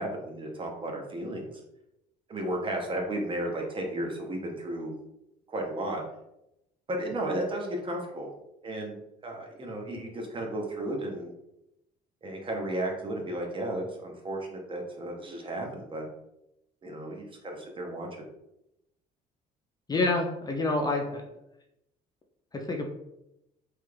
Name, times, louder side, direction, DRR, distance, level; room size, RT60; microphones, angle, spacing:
voice 1, 0.0-1.6 2.3-4.9 5.5-6.0 6.9-8.3 8.6-9.0 9.2-11.3 12.2-16.0 16.8-18.1, right 1 dB, 30° right, 1 dB, 0.7 m, -34 dB
voice 2, 19.9-21.2 22.7-22.9, left 2 dB, 25° left, 1 dB, 0.4 m, -27 dB
3.1 x 2.3 x 3.2 m, 0.86 s
cardioid pair, 110°, 17 cm